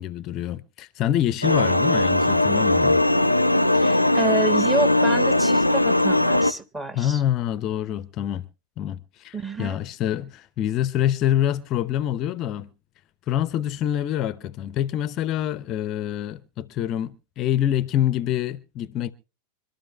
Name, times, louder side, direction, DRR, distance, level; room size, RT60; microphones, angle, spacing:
voice 1, 0.0-3.0 6.9-8.4 8.8-12.7 13.3-19.1, left 11 dB, 35° left, 0.6 m, -26 dB
sound 1, 1.4-6.5, left 1 dB, 90° left, 0.5 m, -19 dB
voice 2, 3.7-7.2 9.3-9.8, right 2 dB, 15° right, 1.4 m, -28 dB
25.5 x 12.5 x 2.2 m
figure-of-eight pair, 90°, 0 cm